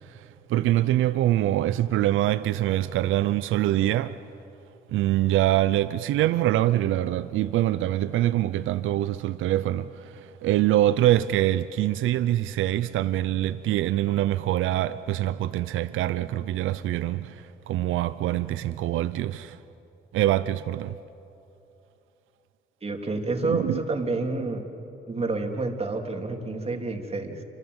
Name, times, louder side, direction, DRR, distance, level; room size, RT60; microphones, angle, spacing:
voice 1, 0.0-4.2 4.9-19.6 20.1-21.0 23.5-23.8, right 13 dB, 85° right, 0.6 m, -24 dB
voice 2, 22.8-24.6 25.1-27.4, right 3 dB, 30° right, 3.2 m, -29 dB
28.5 x 25.5 x 8.0 m
cardioid pair, 90°, 20 cm